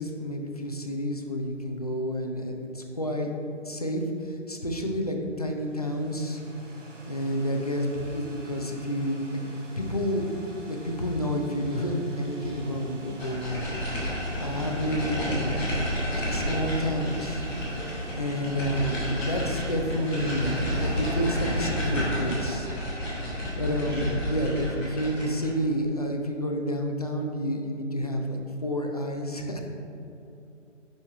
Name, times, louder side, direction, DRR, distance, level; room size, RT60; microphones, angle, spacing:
voice 1, 0.0-3.3 3.7-6.4 7.1-9.4 9.8-10.3 10.7-13.7 14.4-15.6 16.2-17.4 18.2-22.7 23.6-29.6, equal, 30° left, 2 dB, 0.4 m, -29 dB
sound 1, 5.3-23.5, right 2 dB, 75° right, 1.3 m, -45 dB
sound 2, 11.6-13.5 14.3-15.6 16.3-22.8 23.8-24.5, right 1 dB, 40° right, 1.2 m, -45 dB
sound 3, 13.2-25.5, equal, 5° left, 0.9 m, -30 dB
5.7 x 5.4 x 4.6 m, 2.8 s
figure-of-eight pair, 160°, 37 cm